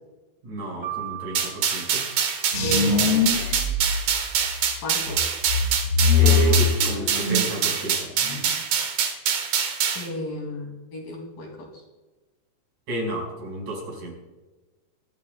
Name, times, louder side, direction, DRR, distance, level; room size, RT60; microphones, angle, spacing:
voice 1, 0.4-2.0 6.2-8.1 12.9-14.1, right 2 dB, 55° right, -1 dB, 6.3 m, -31 dB
sound 1, 0.8-3.0, right 14 dB, 25° left, 2.8 m, -38 dB
sound 2, 1.4-10.1, right 7 dB, 85° right, 3.4 m, -25 dB
sound 3, 2.5-4.6 5.0-7.6 7.9-8.5, left 4 dB, 40° left, 2.2 m, -22 dB
voice 2, 2.6-3.3 4.8-5.2 9.9-11.8, left 1 dB, 70° left, 1 dB, 4.3 m, -33 dB
23.5 x 12.5 x 2.2 m, 1.2 s
omnidirectional pair, 4.2 m